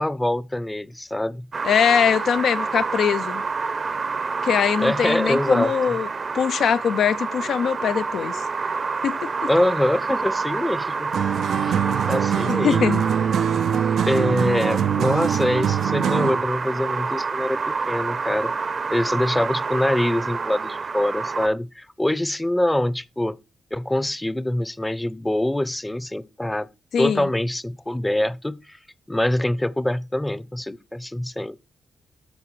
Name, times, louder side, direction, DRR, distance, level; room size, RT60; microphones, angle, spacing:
voice 1, 0.0-1.5 4.8-6.0 9.5-11.1 11.6-12.9 14.0-18.5 18.9-23.4 23.7-26.7 27.0-28.8 29.1-31.6, left 1 dB, 10° left, 0.6 m, -24 dB
sound 1, 1.5-21.5, right 4 dB, 50° right, 0.6 m, -28 dB
voice 2, 1.6-3.4 4.4-6.1 6.3-8.4 9.0-9.5 12.5-13.0 26.9-27.3, left 7 dB, 75° left, 0.3 m, -22 dB
sound 2, 11.1-16.5, right 8 dB, 80° right, 0.3 m, -23 dB
13.0 x 4.9 x 3.1 m
cardioid pair, 65°, 0 cm